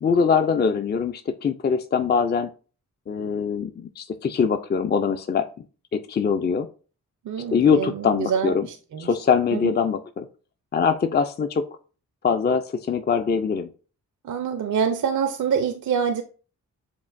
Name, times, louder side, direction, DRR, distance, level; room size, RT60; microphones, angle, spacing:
voice 1, 0.0-2.5 3.1-5.5 5.9-6.7 7.5-8.7 9.0-10.3 10.7-11.6 12.2-13.7, left 6 dB, 30° left, 7 dB, 0.4 m, -22 dB
voice 2, 7.3-9.1 9.5-9.7 14.2-16.2, right 7 dB, 60° right, 8 dB, 0.5 m, -26 dB
7.1 x 2.5 x 2.5 m, 0.38 s
cardioid pair, 50°, 33 cm